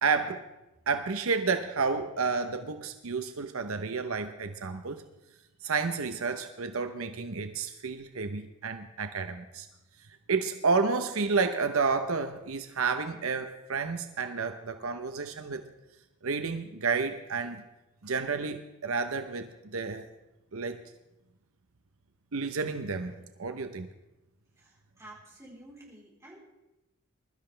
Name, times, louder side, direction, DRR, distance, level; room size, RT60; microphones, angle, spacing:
voice 1, 0.0-0.4 0.9-5.0 5.6-9.7 10.3-15.6 16.2-17.6 18.0-20.1 20.5-20.8 22.3-23.9, right 4 dB, 75° right, 8 dB, 0.8 m, -30 dB
voice 2, 24.6-26.4, right 1 dB, 15° right, -5 dB, 3.9 m, -51 dB
22.0 x 12.5 x 3.3 m, 0.96 s
head